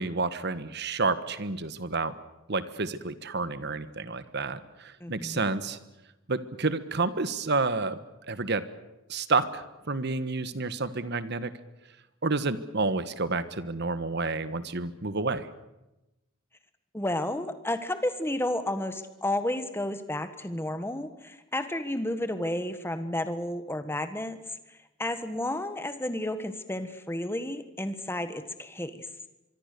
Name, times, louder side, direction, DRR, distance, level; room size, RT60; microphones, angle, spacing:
voice 1, 0.0-2.1 2.5-5.8 6.3-8.0 8.3-8.6 9.1-11.5 12.2-15.5, right 3 dB, 55° right, 13 dB, 1.4 m, -29 dB
voice 2, 5.0-5.5 16.9-24.4 24.7-29.1, left 1 dB, 10° left, 10 dB, 1.5 m, -32 dB
24.5 x 24.0 x 6.8 m, 0.97 s
head